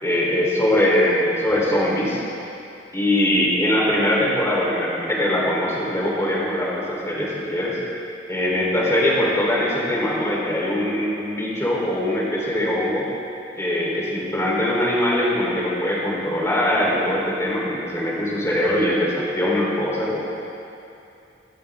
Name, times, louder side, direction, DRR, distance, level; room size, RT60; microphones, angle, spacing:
voice 1, 0.0-2.2 2.9-7.8 8.3-13.1 13.6-20.3, left 1 dB, 15° left, -5 dB, 4.1 m, -22 dB
28.0 x 13.0 x 3.9 m, 2.6 s
head